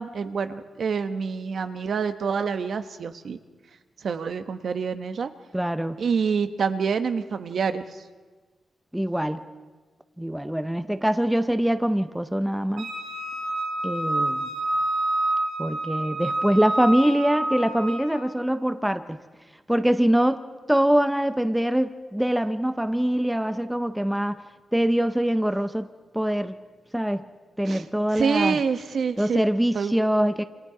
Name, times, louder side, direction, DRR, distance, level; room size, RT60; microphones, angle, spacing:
voice 1, 0.0-3.4 4.0-5.3 6.0-7.8 27.6-27.9 28.1-29.5 29.7-29.9, right 6 dB, 50° right, 9 dB, 1.0 m, -27 dB
voice 2, 5.5-6.0 8.9-9.4 10.2-12.9 13.8-14.5 15.6-19.2 19.7-20.4 20.7-24.4 24.7-25.9 26.1-26.5 26.9-27.3 27.6-28.6 29.2-30.4, equal, 5° right, 10 dB, 0.7 m, -23 dB
Wind instrument woodwind instrument, 12.8-18.1, right 1 dB, 80° right, 7.7 m, -28 dB
28.0 x 27.0 x 4.9 m, 1.3 s
wide cardioid pair, 165°, 0 cm